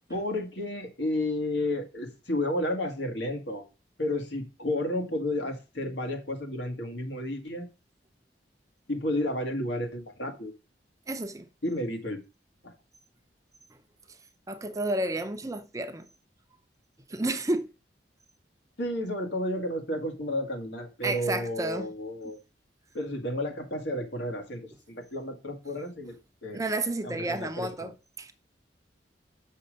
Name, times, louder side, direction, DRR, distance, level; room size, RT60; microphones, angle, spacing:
voice 1, 0.1-3.6 4.0-7.7 8.9-10.5 11.6-12.2 12.6-12.7 18.8-22.4 22.9-24.6 24.9-26.2 26.4-26.6 27.0-27.9, left 1 dB, 75° left, 1.9 m, -32 dB
voice 2, 11.1-11.5 14.5-16.1 17.1-17.7 21.0-21.9 26.5-28.3, right 2 dB, 20° right, 0.6 m, -31 dB
6.4 x 5.6 x 5.2 m
head